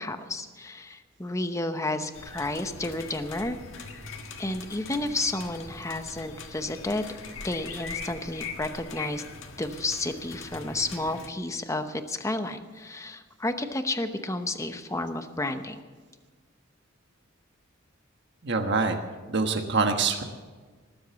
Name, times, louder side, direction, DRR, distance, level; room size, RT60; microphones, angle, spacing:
voice 1, 0.0-3.6 4.4-7.0 7.4-9.2 9.6-15.8, left 2 dB, 15° left, 8 dB, 0.9 m, -31 dB
sound 1, 2.1-11.3, left 4 dB, 85° left, 1.6 m, -41 dB
voice 2, 18.4-19.0 19.3-20.2, right 4 dB, 60° right, 5 dB, 1.3 m, -25 dB
19.0 x 8.0 x 7.1 m, 1.4 s
head